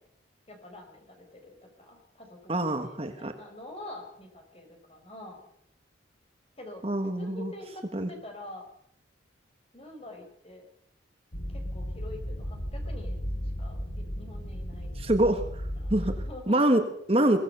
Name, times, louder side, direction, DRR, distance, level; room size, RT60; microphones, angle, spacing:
voice 1, 0.5-5.4 6.6-6.8 7.2-8.7 9.7-10.6 11.5-13.3 13.6-15.5 15.8-16.7, left 1 dB, 30° left, 3 dB, 4.9 m, -46 dB
voice 2, 2.5-3.3 6.8-7.5 7.9-8.1 15.0-15.4 15.9-16.1 16.5-17.4, right 1 dB, 30° right, 6 dB, 1.5 m, -25 dB
sound 1, 11.3-16.3, equal, 85° left, 5.8 m, -35 dB
22.5 x 17.5 x 6.8 m, 0.70 s
head